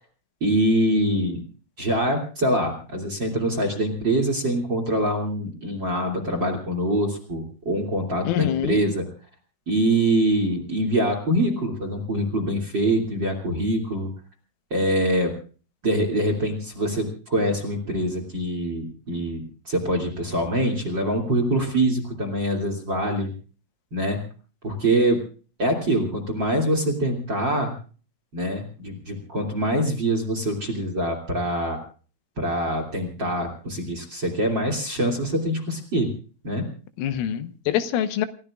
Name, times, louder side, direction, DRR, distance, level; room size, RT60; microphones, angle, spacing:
voice 1, 0.4-1.4 1.8-9.0 9.7-14.1 14.7-15.3 15.8-23.3 23.9-24.2 24.6-25.2 25.6-27.7 28.3-31.8 32.4-36.1 36.4-36.6, right 1 dB, 30° right, 2.5 m, -24 dB
voice 2, 8.3-8.8 37.0-38.3, left 11 dB, 85° left, 3.7 m, -25 dB
28.5 x 16.0 x 2.5 m
omnidirectional pair, 5.7 m